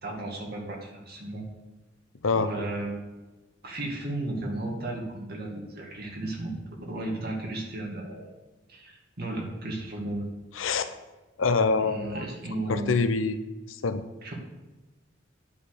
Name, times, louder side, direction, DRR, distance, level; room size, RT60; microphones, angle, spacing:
voice 1, 0.0-1.4 2.3-3.1 3.6-6.5 6.9-8.3 8.7-10.3 11.8-12.9 14.2-14.3, right 2 dB, 55° right, -1 dB, 2.2 m, -34 dB
voice 2, 10.5-10.9 11.4-12.2 12.7-13.4 13.7-14.0, left 4 dB, 90° left, 10 dB, 0.7 m, -25 dB
9.9 x 5.1 x 6.6 m, 1.1 s
head